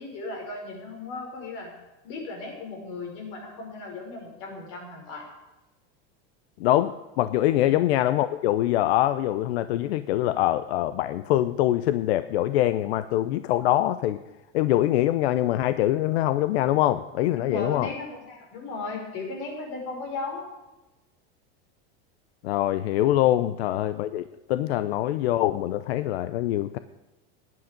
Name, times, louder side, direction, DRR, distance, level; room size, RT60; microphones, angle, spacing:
voice 1, 0.0-1.7 2.0-5.3 7.6-7.8 17.4-20.5, left 3 dB, 50° left, 1 dB, 5.5 m, -36 dB
voice 2, 6.6-14.2 14.5-17.9 22.4-24.2 24.5-26.8, left 14 dB, 85° left, 13 dB, 0.7 m, -24 dB
16.5 x 11.0 x 5.2 m, 1.0 s
supercardioid pair, 165°, 31 cm